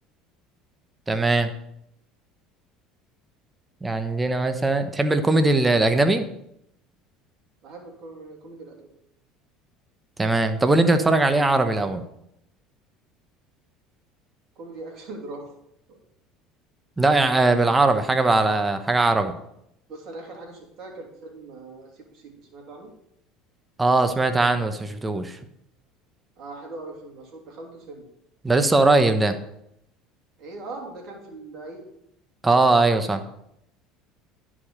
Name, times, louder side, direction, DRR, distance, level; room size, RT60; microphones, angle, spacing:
voice 1, 1.1-1.5 3.8-6.3 10.2-12.0 17.0-19.3 23.8-25.4 28.4-29.3 32.4-33.2, right 2 dB, 15° right, 8 dB, 0.9 m, -20 dB
voice 2, 7.6-8.9 14.5-15.6 15.9-16.0 19.9-22.9 26.4-28.1 29.1-29.3 30.4-31.8, right 2 dB, 60° right, 1 dB, 2.9 m, -40 dB
10.5 x 5.0 x 5.6 m, 0.78 s
hypercardioid pair, 85°, 0 cm